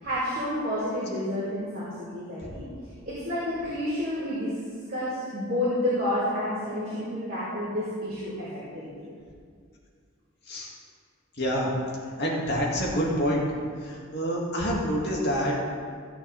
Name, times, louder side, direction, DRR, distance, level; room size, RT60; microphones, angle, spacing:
voice 1, 0.0-2.6 3.1-4.5 4.9-8.5 8.7-9.0, left 1 dB, 40° right, -12 dB, 3.5 m, -30 dB
voice 2, 11.4-11.7 12.2-13.4 13.8-15.6, equal, 50° left, -4 dB, 2.4 m, -27 dB
16.5 x 8.8 x 3.6 m, 2.1 s
head